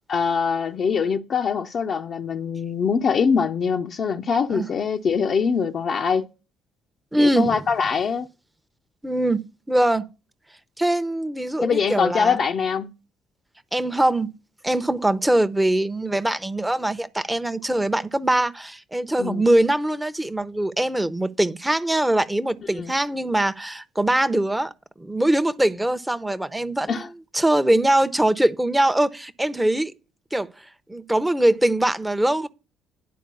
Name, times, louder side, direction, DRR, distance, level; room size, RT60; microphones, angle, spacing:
voice 1, 0.1-6.3 7.2-8.3 11.6-12.9 19.2-19.4 22.8-22.9 26.9-27.1, left 6 dB, 50° left, 0.6 m, -23 dB
voice 2, 7.1-7.6 9.0-10.1 10.8-12.4 13.7-14.3 14.6-24.7 25.0-26.9 27.3-29.9 30.3-30.5 30.9-32.5, right 1 dB, 10° right, 0.8 m, -22 dB
10.5 x 4.5 x 6.9 m
figure-of-eight pair, 50°, 0 cm